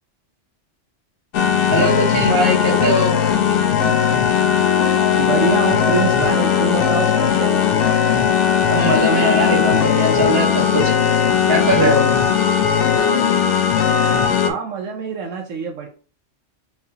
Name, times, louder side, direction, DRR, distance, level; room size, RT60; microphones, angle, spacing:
sound 1, 1.3-14.5, left 8 dB, 75° left, 0.9 m, -17 dB
voice 1, 1.7-3.1 8.7-10.9 11.5-12.0, equal, 55° right, -2 dB, 1.7 m, -19 dB
voice 2, 5.2-7.7 14.4-15.9, right 5 dB, 85° right, 2 dB, 1.1 m, -25 dB
4.5 x 3.5 x 2.8 m, 0.38 s
omnidirectional pair, 1.3 m